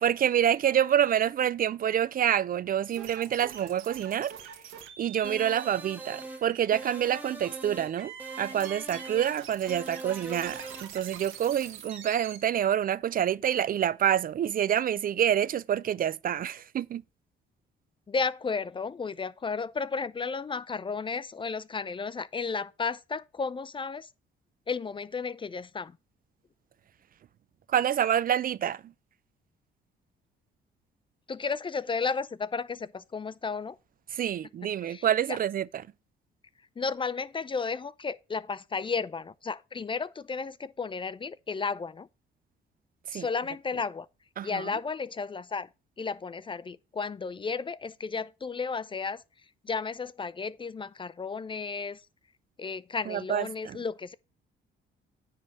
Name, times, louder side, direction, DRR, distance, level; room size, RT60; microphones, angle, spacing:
voice 1, 0.0-4.3 5.0-17.0 27.7-28.9 34.1-35.8 43.1-43.3 44.4-44.7 53.1-53.8, right 10 dB, 45° right, 0.4 m, -27 dB
sound 1, 2.9-12.4, right 9 dB, 90° right, 1.3 m, -45 dB
sound 2, 5.2-6.4 6.7-7.9 8.2-9.4 9.7-10.9, right 2 dB, 10° right, 1.7 m, -42 dB
voice 2, 18.1-24.1 24.7-25.9 31.3-33.8 34.8-35.4 36.8-42.1 43.1-44.1 44.4-45.7 46.0-49.2 49.6-52.0 52.6-54.1, left 5 dB, 25° left, 0.4 m, -33 dB
9.6 x 3.5 x 6.2 m
cardioid pair, 90°, 20 cm